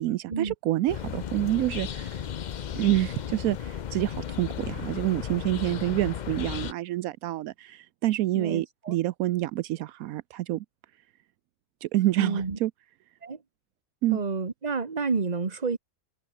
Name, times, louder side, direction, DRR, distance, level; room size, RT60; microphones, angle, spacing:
voice 1, 0.0-2.2 2.8-10.6 11.8-12.7 14.0-14.2, right 15 dB, 80° right, 1.0 m, -27 dB
sound 1, 0.9-6.7, left 8 dB, 60° left, 0.4 m, -35 dB
voice 2, 8.3-8.9 12.2-12.6 13.2-13.4 14.1-15.8, right 4 dB, 30° right, 1.5 m, -30 dB
omnidirectional pair, 1.5 m